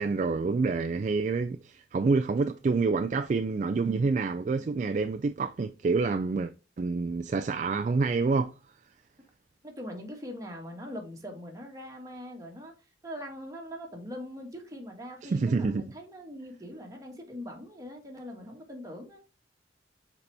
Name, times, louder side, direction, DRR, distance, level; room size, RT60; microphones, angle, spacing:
voice 1, 0.0-6.5 6.8-8.5 15.2-15.9, right 4 dB, 40° right, 0.3 m, -27 dB
voice 2, 9.6-12.7 13.0-19.2, equal, 20° right, 1.6 m, -42 dB
6.9 x 4.1 x 3.3 m
head